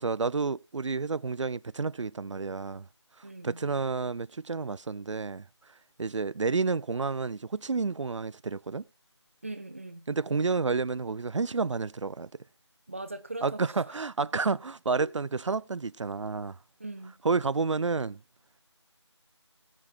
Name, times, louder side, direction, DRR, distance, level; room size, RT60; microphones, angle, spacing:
voice 1, 0.0-2.9 3.2-8.8 10.1-12.3 13.4-16.6 17.2-18.2, right 4 dB, 85° right, 0.4 m, -30 dB
voice 2, 3.2-3.6 9.4-10.1 12.9-14.4 16.8-17.1, right 2 dB, 25° right, 0.7 m, -41 dB
20.0 x 7.5 x 2.5 m
figure-of-eight pair, 175°, 15 cm